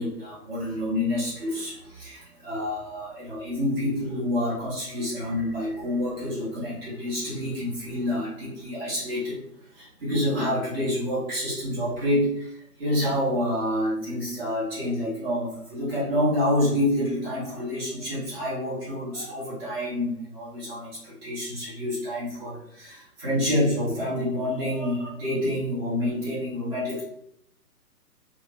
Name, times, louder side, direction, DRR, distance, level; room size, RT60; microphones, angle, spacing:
voice 1, 0.0-9.4 9.7-27.0, left 1 dB, ahead, -20 dB, 0.4 m, -28 dB
3.0 x 2.1 x 2.3 m, 0.76 s
figure-of-eight pair, 135°, 47 cm